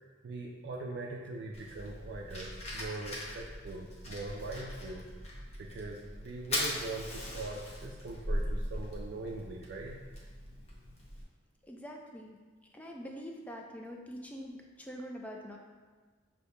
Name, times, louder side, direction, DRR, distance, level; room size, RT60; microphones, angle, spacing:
voice 1, 0.2-5.0 5.6-10.0, right 2 dB, 65° right, -1 dB, 0.4 m, -41 dB
Fire, 1.5-11.2, left 1 dB, 35° left, 0.7 m, -39 dB
voice 2, 11.6-12.4 12.7-15.6, equal, 10° left, 1 dB, 0.3 m, -44 dB
6.5 x 2.7 x 2.2 m, 1.4 s
head